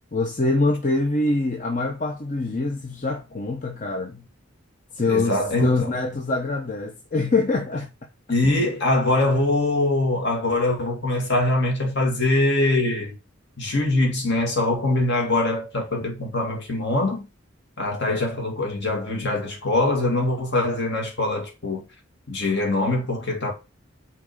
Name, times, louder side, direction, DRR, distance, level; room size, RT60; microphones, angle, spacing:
voice 1, 0.1-4.3 4.9-7.9, left 2 dB, 35° left, 0.8 m, -24 dB
voice 2, 5.1-5.9 8.3-13.2 13.6-17.3 17.8-21.8 22.3-23.5, left 2 dB, 55° left, 2.4 m, -23 dB
6.1 x 4.0 x 4.9 m
head